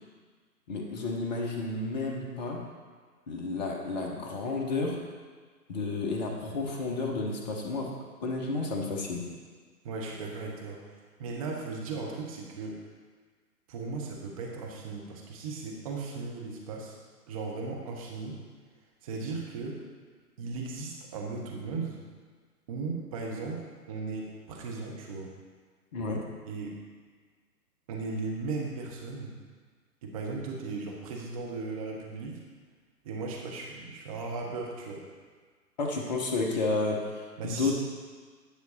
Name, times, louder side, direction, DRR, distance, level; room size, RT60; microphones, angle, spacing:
voice 1, 0.7-2.6 3.3-5.0 5.7-7.9 8.2-9.3 25.9-26.2 35.8-37.7, left 3 dB, 25° left, 0 dB, 1.1 m, -31 dB
voice 2, 9.8-12.8 13.7-17.0 17.3-18.4 19.0-19.8 20.4-22.0 22.7-25.3 26.5-26.8 27.9-29.4 30.0-32.4 33.0-35.1 37.4-37.7, right 3 dB, 20° right, -1 dB, 1.0 m, -37 dB
10.0 x 6.1 x 4.2 m, 1.5 s
figure-of-eight pair, 135°, 49 cm